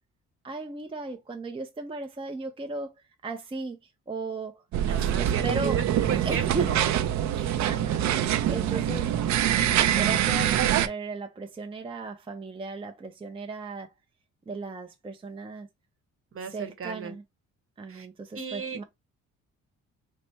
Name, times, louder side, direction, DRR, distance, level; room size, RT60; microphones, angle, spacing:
voice 1, 0.4-2.9 3.2-3.8 4.1-5.8 6.2-6.7 7.3-8.2 8.5-9.1 10.0-13.9 14.5-15.7 16.4-17.2 17.8-18.8, right 3 dB, 20° right, 0.5 m, -36 dB
sound 1, 4.7-10.9, right 10 dB, 70° right, 0.5 m, -24 dB
voice 2, 4.9-6.8 16.3-17.1 17.9-18.1 18.3-18.8, right 6 dB, 45° right, 1.0 m, -35 dB
4.2 x 2.1 x 3.3 m
cardioid pair, 90°, 30 cm